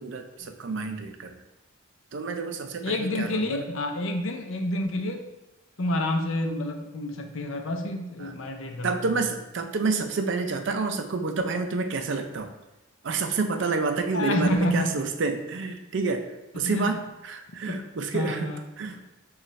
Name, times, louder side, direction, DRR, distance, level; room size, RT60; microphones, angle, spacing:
voice 1, 0.0-1.3 2.1-3.6 8.2-8.3 8.8-12.5 13.0-16.3 16.5-18.5 18.8-19.0, right 4 dB, 60° right, 6 dB, 0.4 m, -29 dB
voice 2, 2.8-5.2 5.8-9.2 14.1-14.9 16.6-17.0 18.1-18.6, left 1 dB, 70° left, 5 dB, 0.6 m, -28 dB
6.6 x 2.4 x 3.1 m, 1.0 s
head